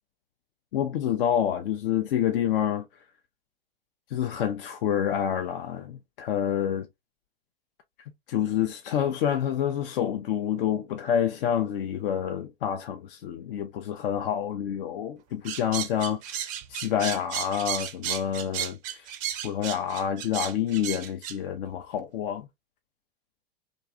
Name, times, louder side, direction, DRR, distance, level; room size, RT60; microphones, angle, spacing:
voice 1, 0.7-2.9 4.1-6.9 8.3-19.1 19.4-22.5, left 9 dB, 60° left, 0.4 m, -28 dB
sound 1, 15.5-21.4, right 10 dB, 25° right, 0.4 m, -33 dB
2.5 x 2.2 x 2.7 m
hypercardioid pair, 105°, 31 cm